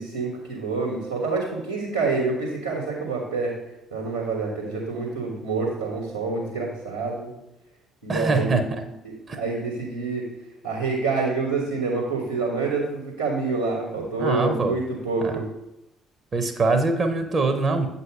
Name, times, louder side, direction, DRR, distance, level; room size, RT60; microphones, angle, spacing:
voice 1, 0.0-3.5 3.9-7.3 8.0-10.3 10.6-15.4, right 3 dB, 85° right, -6 dB, 1.3 m, -27 dB
voice 2, 8.1-8.8 9.3-9.4 14.2-14.8 15.2-15.3 16.3-17.9, right 3 dB, 40° right, 7 dB, 0.7 m, -23 dB
7.8 x 2.7 x 5.2 m, 0.87 s
figure-of-eight pair, 45°, 0 cm